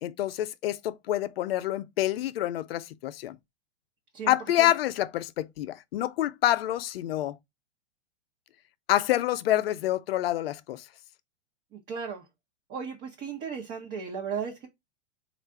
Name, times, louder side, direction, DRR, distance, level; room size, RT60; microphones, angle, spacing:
voice 1, 0.0-3.4 4.3-7.4 8.9-10.9, left 13 dB, 60° left, 0.5 m, -27 dB
voice 2, 4.1-4.7 11.7-12.3 12.7-14.7, right 6 dB, 30° right, 0.9 m, -36 dB
3.3 x 2.5 x 4.4 m
hypercardioid pair, 110°, 34 cm